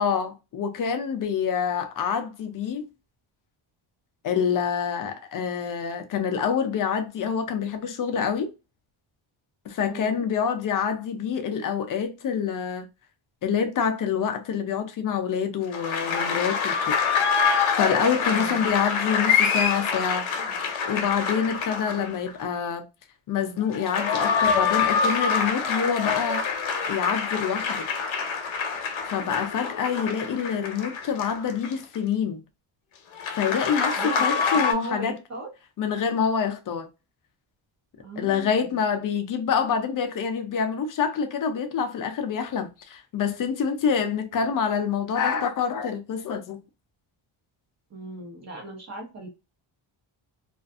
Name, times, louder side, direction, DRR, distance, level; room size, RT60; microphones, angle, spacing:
voice 1, 0.0-2.9 4.2-8.5 9.7-12.9 13.4-17.0 17.8-20.3 20.9-22.9 23.3-26.4 26.9-27.9 29.1-32.4 33.3-35.2 35.8-36.9 38.2-46.6, left 7 dB, 45° left, 0.4 m, -26 dB
voice 2, 9.8-10.2 18.2-18.7 21.8-22.1 34.0-35.5 38.0-38.8 47.9-49.3, right 1 dB, 35° right, 0.9 m, -37 dB
sound 1, 15.7-22.3 23.6-32.0 33.2-34.7, left 5 dB, 80° left, 0.8 m, -26 dB
2.5 x 2.4 x 2.3 m
wide cardioid pair, 175°, 48 cm